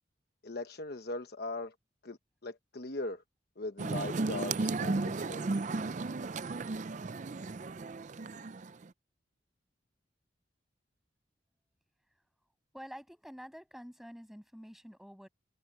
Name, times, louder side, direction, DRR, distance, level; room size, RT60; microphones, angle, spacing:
voice 1, 0.4-1.7 2.0-3.2 3.6-5.6, left 2 dB, 55° left, 1.1 m, -40 dB
sound 1, 3.8-8.8, right 3 dB, 40° right, 0.5 m, -34 dB
voice 2, 12.7-15.3, equal, ahead, 7.1 m, -48 dB
head